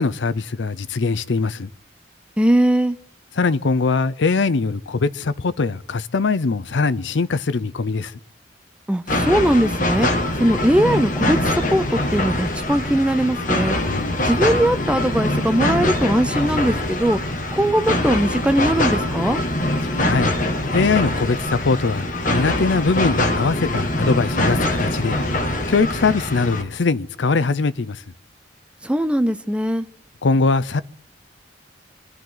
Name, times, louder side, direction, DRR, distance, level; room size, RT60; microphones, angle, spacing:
voice 1, 0.0-1.7 3.4-8.1 13.8-14.3 19.8-20.3 20.7-22.0 22.3-28.0 30.2-30.8, left 4 dB, 85° left, 0.6 m, -21 dB
voice 2, 2.4-3.0 8.9-10.1 10.4-11.4 11.7-13.8 14.2-17.2 17.5-19.4 28.8-29.9, right 1 dB, 5° right, 0.6 m, -20 dB
sound 1, 9.1-26.6, left 1 dB, 50° left, 1.8 m, -23 dB
26.0 x 12.0 x 3.9 m
head